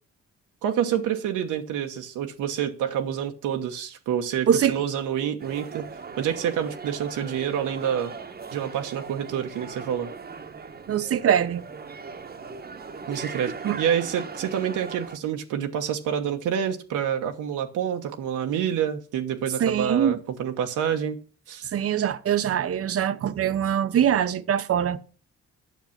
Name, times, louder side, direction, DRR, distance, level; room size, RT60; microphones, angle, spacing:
voice 1, 0.6-5.8 6.2-8.1 8.5-10.1 13.1-21.2 21.5-21.6, right 9 dB, 85° right, 1.2 m, -27 dB
voice 2, 4.5-4.8 10.9-11.6 13.6-13.8 19.6-20.2 21.7-25.1, right 9 dB, 50° right, 0.8 m, -23 dB
sound 1, 5.4-15.2, right 5 dB, 30° right, 1.1 m, -39 dB
9.3 x 6.7 x 5.8 m
cardioid pair, 90°, 30 cm